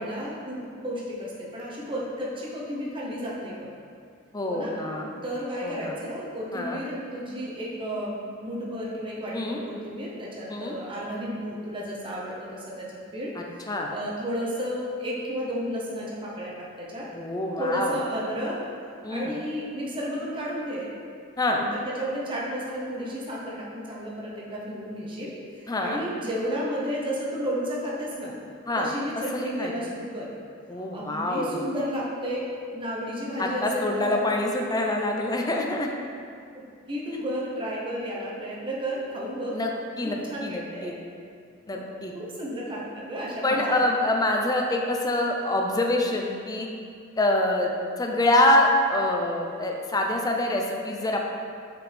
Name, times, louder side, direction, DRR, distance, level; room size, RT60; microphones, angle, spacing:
voice 1, 0.0-3.7 4.5-4.7 5.2-12.9 13.1-13.3 13.9-17.1 17.6-18.6 19.1-20.9 21.5-28.3 28.8-30.3 30.9-32.4 32.7-34.2 36.9-39.6 40.0-40.9 41.7-43.8 47.4-47.6, equal, 25° right, -5 dB, 0.8 m, -32 dB
voice 2, 4.3-5.1 5.6-5.9 6.5-6.8 9.3-9.6 10.5-10.7 13.4-13.9 17.1-18.0 19.0-19.3 21.4-21.6 25.7-26.0 28.7-28.9 29.3-29.7 30.7-31.6 33.4-35.9 39.5-39.7 40.0-40.2 40.4-40.9 41.7-42.1 43.4-46.7 47.2-47.7 48.0-51.2, left 1 dB, 20° left, 1 dB, 0.5 m, -25 dB
6.0 x 5.2 x 3.4 m, 2.3 s
head